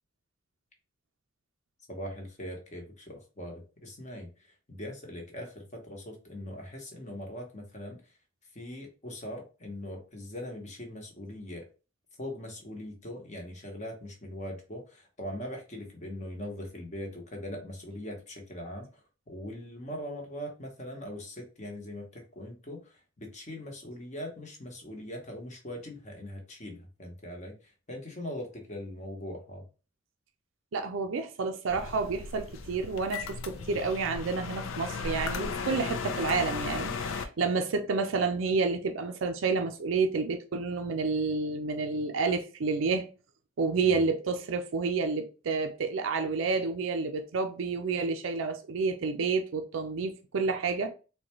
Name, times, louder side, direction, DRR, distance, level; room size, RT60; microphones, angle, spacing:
voice 1, 1.9-4.3 4.7-8.0 8.5-11.6 12.2-18.9 19.3-27.5 27.9-29.6 37.4-37.5 43.8-44.0, left 1 dB, 35° left, 1.0 m, -41 dB
voice 2, 30.7-43.1 43.6-50.9, right 4 dB, 70° right, 0.4 m, -29 dB
sound 1, 31.7-37.2, left 5 dB, 80° left, 0.5 m, -36 dB
3.9 x 2.2 x 2.9 m
head